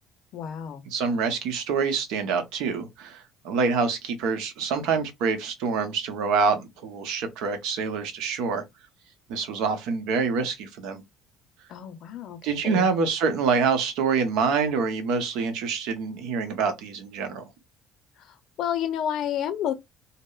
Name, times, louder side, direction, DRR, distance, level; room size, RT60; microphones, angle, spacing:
voice 1, 0.3-0.8 11.7-12.4 12.6-12.9 18.6-19.7, left 10 dB, 60° left, 0.5 m, -29 dB
voice 2, 0.9-8.6 9.3-11.0 12.4-17.4, right 5 dB, 80° right, 0.7 m, -26 dB
2.8 x 2.0 x 2.3 m
cardioid pair, 120°, 0 cm